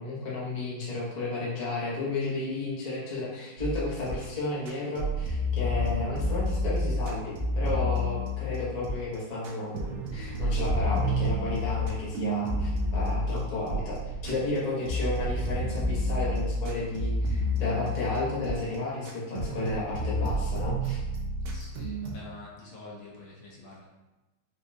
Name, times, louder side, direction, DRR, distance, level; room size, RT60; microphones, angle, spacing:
voice 1, 0.0-21.0, left 2 dB, 45° left, -7 dB, 0.5 m, -32 dB
sound 1, 3.6-4.4 4.7-9.1 9.4-14.6 14.9-18.8 19.0-22.1, left 1 dB, 85° right, 1.5 m, -30 dB
voice 2, 13.2-13.6 21.4-23.8, left 2 dB, 75° left, -5 dB, 1.7 m, -47 dB
4.9 x 2.2 x 2.7 m, 1.1 s
omnidirectional pair, 2.3 m